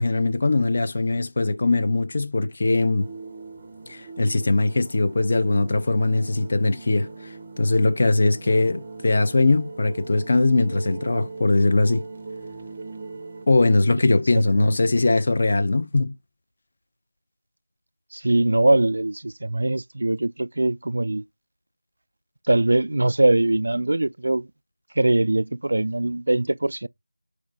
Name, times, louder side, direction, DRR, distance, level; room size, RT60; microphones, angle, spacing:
voice 1, 0.0-3.1 3.9-7.1 7.6-12.0 13.5-16.1, left 2 dB, 35° left, 0.7 m, -21 dB
sound 1, 3.0-13.5, right 3 dB, 25° right, 0.6 m, -40 dB
voice 2, 18.1-21.2 22.5-24.5 25.0-26.9, right 2 dB, 60° right, 0.3 m, -22 dB
4.9 x 3.9 x 5.0 m
figure-of-eight pair, 175°, 0 cm